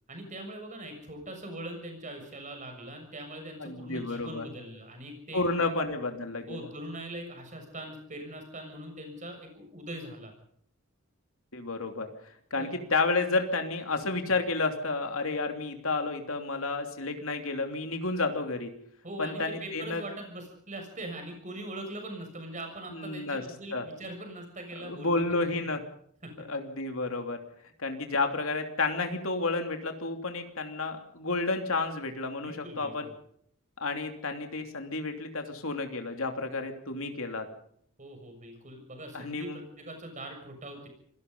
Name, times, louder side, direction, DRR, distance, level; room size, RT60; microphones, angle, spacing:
voice 1, 0.1-5.7 6.5-10.3 12.6-12.7 19.0-25.5 26.2-26.5 32.4-33.1 38.0-40.9, right 1 dB, 35° right, 4 dB, 6.8 m, -41 dB
voice 2, 3.6-4.5 5.3-6.7 11.5-12.1 12.5-18.7 19.2-20.0 22.9-23.4 23.7-23.8 24.8-25.8 26.5-27.4 27.8-33.1 33.8-37.5 39.1-39.6, left 3 dB, 65° left, 5 dB, 3.1 m, -31 dB
27.0 x 18.0 x 5.5 m, 0.65 s
head